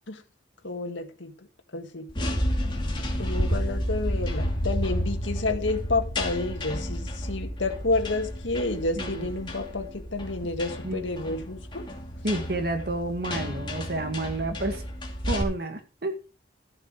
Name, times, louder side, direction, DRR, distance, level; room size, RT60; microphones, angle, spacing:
voice 1, 0.6-1.3 1.7-2.4 3.2-11.9, left 2 dB, 85° left, 1.9 m, -30 dB
sound 1, 2.1-15.4, equal, 25° left, 2.5 m, -31 dB
voice 2, 9.0-9.3 10.8-11.0 12.2-14.8 15.3-16.2, right 2 dB, 55° right, 1.9 m, -30 dB
14.0 x 8.0 x 5.0 m
head